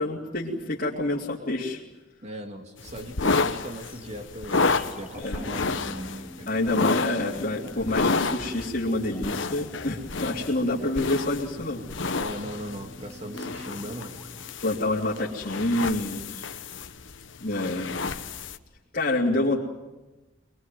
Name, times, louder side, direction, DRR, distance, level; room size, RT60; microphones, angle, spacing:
voice 1, 0.0-1.8 5.2-5.5 6.5-11.8 14.6-16.5 17.4-18.0 18.9-19.6, left 2 dB, 50° left, -6 dB, 3.1 m, -27 dB
voice 2, 2.2-6.5 12.2-14.1, equal, 35° right, 4 dB, 2.8 m, -39 dB
sound 1, 2.8-18.6, left 3 dB, 75° left, 1.2 m, -30 dB
sound 2, 3.6-15.6 15.9-16.0, equal, 5° right, 2.1 m, -46 dB
24.0 x 22.0 x 9.4 m, 1.1 s
head